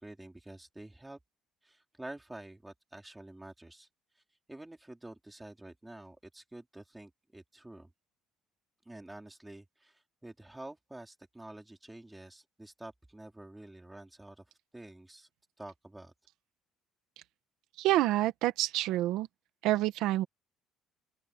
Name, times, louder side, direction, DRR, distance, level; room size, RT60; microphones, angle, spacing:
voice 1, 0.0-1.2 1.6-3.9 4.5-7.9 8.9-14.4 14.7-15.3 15.6-16.1, right 1 dB, 5° right, 3.8 m, -48 dB
voice 2, 17.8-19.3 19.6-20.3, right 15 dB, 75° right, 1.2 m, -27 dB
open air
cardioid pair, 140°, 0 cm